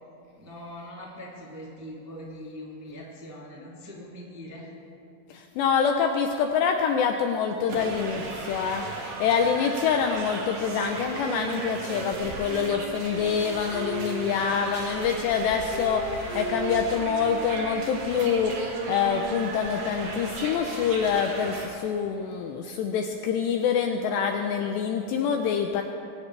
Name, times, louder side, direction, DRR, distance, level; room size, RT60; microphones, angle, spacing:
voice 1, 0.4-4.7 14.5-14.8, equal, 10° right, -5 dB, 0.8 m, -42 dB
voice 2, 5.3-25.8, left 7 dB, 80° left, 4 dB, 2.5 m, -26 dB
sound 1, 7.7-21.7, right 2 dB, 50° right, 2.5 m, -37 dB
sound 2, 10.6-15.3 15.7-20.7, right 7 dB, 85° right, 2.8 m, -38 dB
23.5 x 17.0 x 3.3 m, 2.8 s
omnidirectional pair, 5.6 m